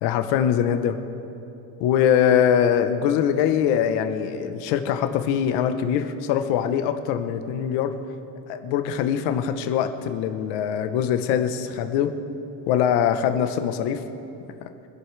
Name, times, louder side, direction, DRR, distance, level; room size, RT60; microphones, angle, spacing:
voice 1, 0.0-1.0 1.8-7.9 8.5-12.1 12.7-14.0 14.6-14.7, left 9 dB, 85° left, 8 dB, 1.1 m, -22 dB
25.0 x 11.0 x 3.4 m, 3.0 s
cardioid pair, 165°, 40 cm